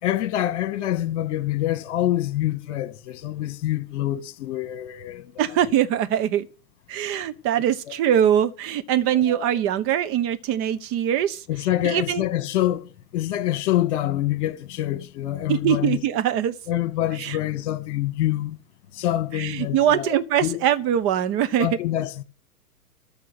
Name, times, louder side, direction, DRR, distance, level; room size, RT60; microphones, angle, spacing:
voice 1, 0.0-5.5 9.1-9.6 11.5-16.0 16.7-18.6 18.9-20.1 20.4-20.6 21.6-22.2, left 13 dB, 50° left, 1.7 m, -26 dB
voice 2, 5.4-6.5 6.9-11.4 11.8-12.2 15.5-16.5 17.2-17.4 19.3-21.7, right 10 dB, 30° right, 1.0 m, -22 dB
13.5 x 5.8 x 9.5 m
hypercardioid pair, 115°, 46 cm